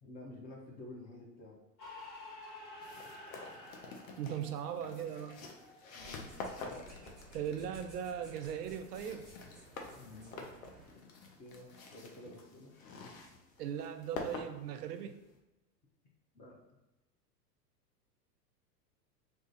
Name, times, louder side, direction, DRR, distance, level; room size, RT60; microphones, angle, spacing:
voice 1, 0.0-1.6 5.9-6.3 6.6-7.1 9.8-10.5 10.9-11.0 11.4-12.7 16.3-16.6, left 2 dB, 20° left, -2 dB, 0.5 m, -51 dB
sound 1, 1.8-7.4, left 2 dB, 80° left, 1.2 m, -52 dB
sound 2, 2.8-15.3, left 3 dB, 55° left, 0.7 m, -48 dB
voice 2, 4.2-5.5 7.3-9.3 13.6-15.1, right 9 dB, 70° right, 8 dB, 0.5 m, -39 dB
sound 3, 5.9-10.9, right 1 dB, ahead, 1.1 m, -56 dB
2.5 x 2.4 x 3.8 m, 0.99 s
figure-of-eight pair, 95°, 49 cm